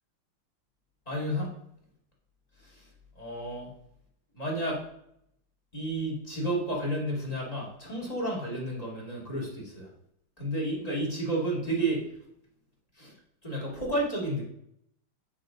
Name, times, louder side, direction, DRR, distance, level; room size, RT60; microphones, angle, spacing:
voice 1, 1.1-1.5 2.6-2.8 3.2-3.7 4.3-4.8 5.7-9.9 10.4-12.0 13.0-13.1 13.4-14.5, right 1 dB, 15° left, -3 dB, 2.3 m, -31 dB
9.9 x 3.7 x 5.1 m, 0.73 s
omnidirectional pair, 2.4 m